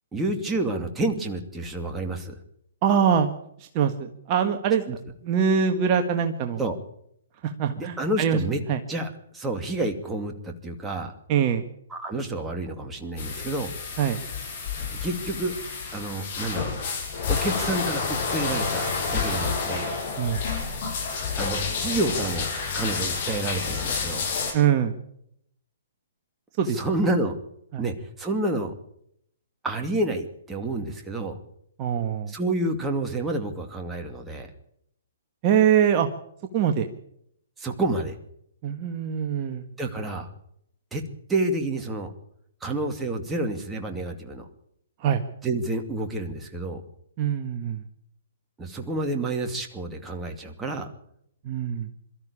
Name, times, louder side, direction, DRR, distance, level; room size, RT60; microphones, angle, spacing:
voice 1, 0.1-2.4 4.9-5.0 6.6-6.8 7.8-8.6 8.9-11.1 11.9-13.7 14.9-15.5 15.9-16.7 17.3-19.9 21.4-24.3 26.6-27.4 27.8-28.7 29.6-31.4 32.3-34.5 37.6-38.2 39.8-40.3 40.9-41.0 41.3-42.1 42.6-44.5 45.4-46.8 48.6-50.9, right 2 dB, 10° right, 3 dB, 2.5 m, -29 dB
voice 2, 2.8-3.3 3.7-4.8 5.2-6.6 7.6-8.4 8.7-8.8 11.3-11.6 14.0-14.2 20.2-20.4 24.5-25.0 26.6-26.8 27.7-27.8 31.8-32.3 35.4-36.1 36.5-36.9 38.6-39.6 45.0-45.2 47.2-47.8 51.4-51.9, right 8 dB, 35° right, 5 dB, 1.6 m, -23 dB
sound 1, 13.2-24.5, left 5 dB, 50° left, 8.0 m, -29 dB
23.0 x 13.5 x 8.6 m, 0.74 s
hypercardioid pair, 130°, 0 cm